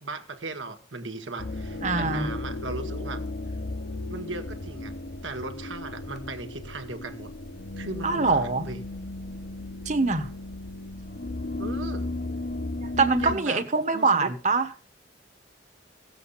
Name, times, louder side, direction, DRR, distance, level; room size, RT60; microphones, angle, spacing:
voice 1, 0.0-3.2 4.1-4.9 5.2-7.3 7.8-8.8 11.6-12.1 13.2-13.6 13.9-14.3, right 3 dB, 85° right, 1.7 m, -37 dB
sound 1, 1.4-13.4, left 2 dB, 55° left, 0.9 m, -35 dB
voice 2, 1.8-2.3 8.0-8.6 9.8-10.3 13.0-14.7, right 4 dB, 40° right, 1.3 m, -23 dB
16.5 x 7.9 x 5.7 m
head